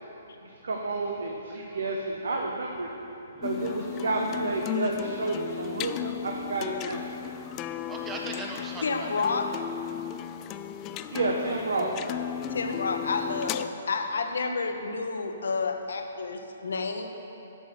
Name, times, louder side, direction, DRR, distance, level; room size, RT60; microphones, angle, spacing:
voice 1, 0.4-2.9 3.4-7.1 11.1-11.9, right 3 dB, 75° right, 1 dB, 1.0 m, -30 dB
voice 2, 3.3-4.0 7.3-9.3, right 2 dB, 15° right, 0 dB, 1.3 m, -41 dB
sound 1, 3.4-13.7, left 10 dB, 30° left, 0.3 m, -35 dB
voice 3, 8.8-9.7 12.5-17.1, left 4 dB, 75° left, 5 dB, 1.0 m, -30 dB
11.0 x 6.3 x 6.5 m, 2.9 s
hypercardioid pair, 140°, 0 cm